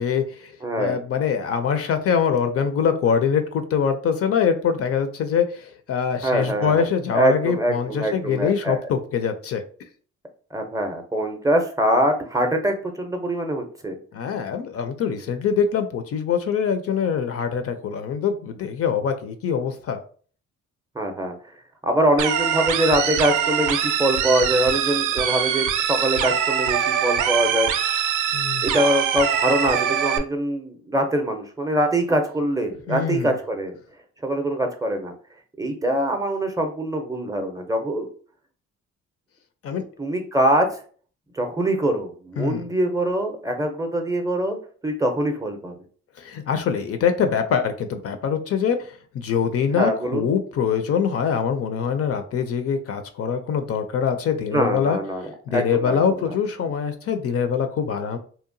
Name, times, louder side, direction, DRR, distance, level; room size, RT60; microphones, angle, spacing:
voice 1, 0.0-9.6 14.1-20.0 28.3-28.6 32.9-33.3 39.6-39.9 42.4-42.6 46.2-55.0 55.5-58.2, left 7 dB, 50° left, 8 dB, 0.4 m, -24 dB
voice 2, 0.6-1.0 6.2-6.9 7.1-8.8 10.5-14.0 20.9-21.3 21.8-27.7 28.6-33.7 34.2-35.1 35.6-38.1 40.0-40.8 41.3-44.6 44.8-45.7 49.7-50.3 54.5-56.3, right 1 dB, 10° right, 5 dB, 0.5 m, -23 dB
sound 1, 22.2-30.2, right 8 dB, 80° right, 0.5 m, -23 dB
2.8 x 2.1 x 2.5 m, 0.43 s
cardioid pair, 90°, 30 cm